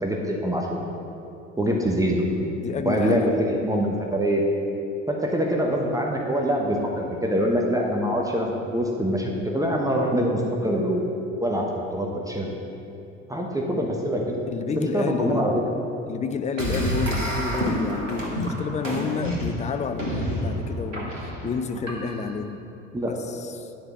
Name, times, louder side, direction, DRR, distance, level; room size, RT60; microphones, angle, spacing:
voice 1, 0.0-0.8 1.6-2.2 2.8-4.4 5.1-11.1 11.4-11.7 11.9-12.5 13.3-14.4 14.8-15.5 22.9-23.2, equal, 10° right, 0 dB, 1.0 m, -24 dB
voice 2, 2.6-3.4 14.5-15.5 16.1-21.2 21.4-22.6 23.0-23.7, left 5 dB, 20° left, 9 dB, 0.5 m, -30 dB
sound 1, 16.6-22.4, equal, 90° right, 1.3 m, -29 dB
10.5 x 5.0 x 6.1 m, 2.9 s
figure-of-eight pair, 70°, 38 cm